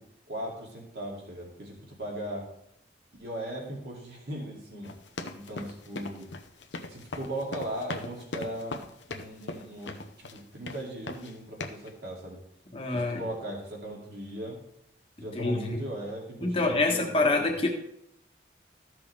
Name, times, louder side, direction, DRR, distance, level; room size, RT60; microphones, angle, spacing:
voice 1, 0.3-2.5 3.2-4.9 5.3-6.3 6.9-8.8 9.1-12.4 12.9-14.6 15.2-17.4, right 1 dB, 60° right, -2 dB, 2.6 m, -38 dB
sound 1, 4.8-10.4 10.7-11.3 11.6-11.9, left 2 dB, 80° left, 0.9 m, -39 dB
voice 2, 12.7-13.2 15.3-15.8 16.4-17.7, left 2 dB, 30° left, 1 dB, 1.3 m, -26 dB
14.0 x 6.1 x 3.3 m, 0.76 s
head